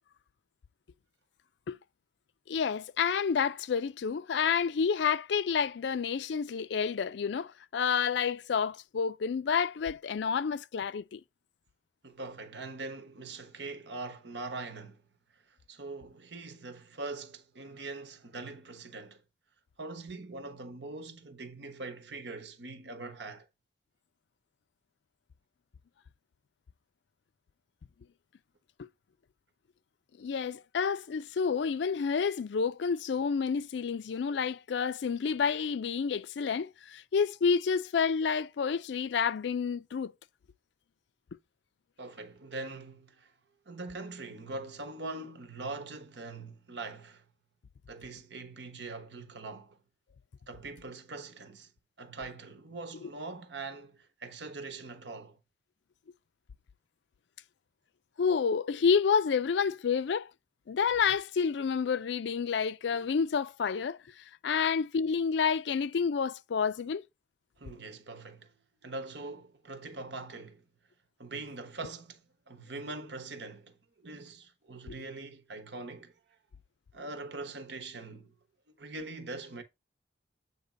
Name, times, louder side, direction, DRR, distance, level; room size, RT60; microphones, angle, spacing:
voice 1, 2.5-11.2 28.8-28.9 30.2-40.1 58.2-60.3 60.7-67.0, left 6 dB, 75° left, 0.4 m, -29 dB
voice 2, 12.0-15.0 15.7-19.2 19.8-23.5 42.0-43.3 43.7-47.2 47.9-49.8 50.5-51.7 52.0-55.4 67.6-68.6 68.8-70.7 71.2-76.1 76.9-78.3 78.7-79.6, right 3 dB, 75° right, 1.2 m, -42 dB
8.1 x 2.9 x 5.0 m
head